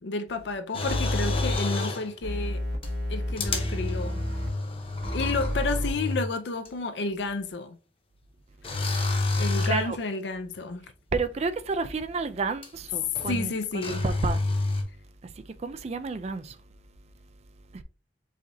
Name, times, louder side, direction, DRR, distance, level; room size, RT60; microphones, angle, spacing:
voice 1, 0.0-2.6 3.1-4.2 5.1-7.8 9.4-10.9 13.3-14.0, left 3 dB, 70° left, 0.5 m, -31 dB
sound 1, 0.7-2.1 2.8-2.9 3.4-6.3 6.7-6.8 8.6-9.9 12.6-12.7 13.2-13.5 13.8-14.8, left 2 dB, 30° left, 0.8 m, -29 dB
sound 2, 0.9-1.6 2.2-4.5 5.0-5.9, equal, 70° right, 1.4 m, -31 dB
voice 2, 9.6-10.0 11.1-14.4 15.2-16.6 17.7-17.8, right 4 dB, 35° right, 0.4 m, -31 dB
4.9 x 4.1 x 2.7 m
head